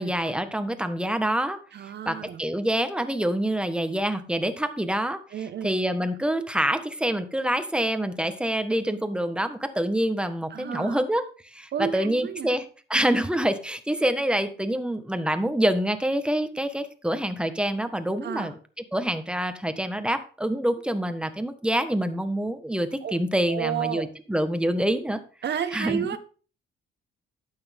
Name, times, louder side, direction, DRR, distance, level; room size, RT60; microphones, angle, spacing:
voice 1, 0.0-5.2 5.6-12.6 12.9-18.5 18.9-25.2 25.7-26.1, right 1 dB, 5° right, 9 dB, 1.5 m, -26 dB
voice 2, 1.7-2.4 5.3-5.7 10.5-11.0 11.7-12.6 18.2-18.5 23.0-23.1 23.5-24.1 25.4-26.2, right 8 dB, 60° right, 11 dB, 1.4 m, -31 dB
12.0 x 8.9 x 3.7 m, 0.39 s
cardioid pair, 90°, 20 cm